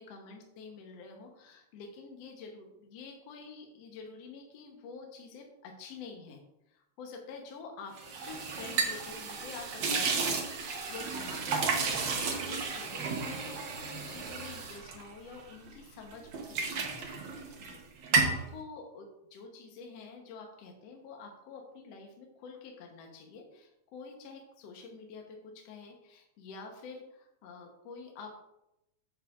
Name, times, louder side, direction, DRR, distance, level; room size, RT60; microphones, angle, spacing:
voice 1, 0.0-6.4 6.7-17.8 18.1-28.4, left 4 dB, 65° left, 2 dB, 1.9 m, -48 dB
sound 1, 8.0-15.7 16.1-17.8 18.0-18.4, right 4 dB, 60° right, 1.3 m, -33 dB
8.6 x 7.5 x 2.4 m, 0.85 s
omnidirectional pair, 3.3 m